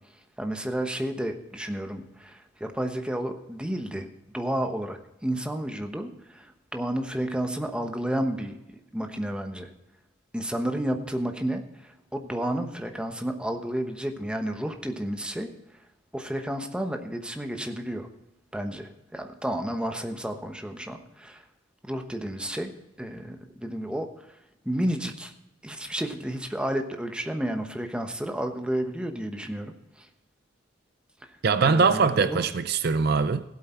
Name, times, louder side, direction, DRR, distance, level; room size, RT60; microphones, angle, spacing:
voice 1, 0.4-4.1 4.3-8.6 8.9-9.7 10.3-15.5 16.1-18.1 18.5-21.4 21.8-22.7 23.0-24.1 24.6-25.3 25.6-30.1 31.6-32.4, right 1 dB, 5° right, 1.1 m, -31 dB
voice 2, 31.4-33.4, right 5 dB, 55° right, 0.5 m, -22 dB
16.5 x 8.2 x 4.4 m
head